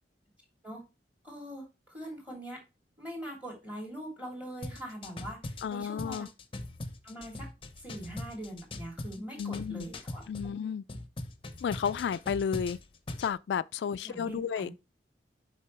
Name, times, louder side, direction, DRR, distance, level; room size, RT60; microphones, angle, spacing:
voice 1, 1.2-2.6 3.0-6.2 7.0-7.5 7.8-10.6 14.0-14.7, right 1 dB, 10° right, 2.8 m, -42 dB
sound 1, 4.6-10.5 10.9-13.3, left 2 dB, 30° left, 0.7 m, -41 dB
voice 2, 5.6-6.3 9.4-9.9 10.3-10.8 11.6-12.8 13.2-14.7, left 7 dB, 75° left, 0.3 m, -32 dB
6.7 x 5.3 x 3.2 m
head